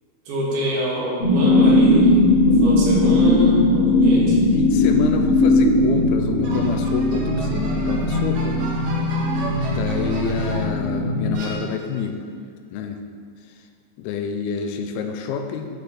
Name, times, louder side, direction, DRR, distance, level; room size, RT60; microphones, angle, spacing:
voice 1, 0.3-4.4, equal, 90° right, -5 dB, 3.8 m, -26 dB
sound 1, 1.2-11.3, left 1 dB, 30° left, 1.3 m, -18 dB
voice 2, 4.5-8.6 9.7-12.2 12.7-13.0 14.0-15.7, left 6 dB, 90° left, 6 dB, 2.5 m, -28 dB
sound 2, 6.4-10.8 11.3-12.1, right 2 dB, 65° right, 2.6 m, -35 dB
11.5 x 4.5 x 4.9 m, 2.1 s
omnidirectional pair, 4.4 m